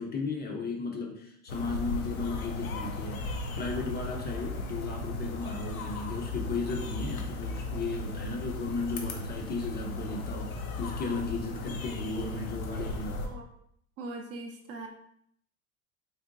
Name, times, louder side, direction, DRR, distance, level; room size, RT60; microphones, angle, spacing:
voice 1, 0.0-13.2, left 3 dB, 25° left, 1 dB, 0.5 m, -35 dB
sound 1, 1.5-13.3, left 2 dB, 90° left, 0.6 m, -36 dB
voice 2, 14.0-14.9, right 2 dB, 35° right, 3 dB, 0.5 m, -40 dB
3.9 x 2.1 x 2.5 m, 0.67 s
hypercardioid pair, 80°, 41 cm